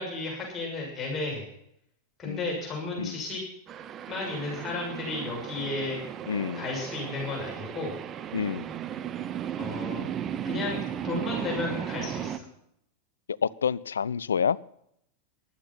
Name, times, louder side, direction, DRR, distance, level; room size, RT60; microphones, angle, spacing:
voice 1, 0.0-1.5 2.2-3.4 4.1-6.0 6.5-7.9 9.6-10.1 10.4-12.4, left 2 dB, 20° left, 6.9 m, -33 dB
sound 1, 3.7-12.4, right 9 dB, 30° right, 1.0 m, -35 dB
voice 2, 6.3-6.7 8.3-8.7 13.3-14.6, left 7 dB, 70° left, 0.5 m, -28 dB
16.0 x 12.0 x 5.8 m
figure-of-eight pair, 90°, 0 cm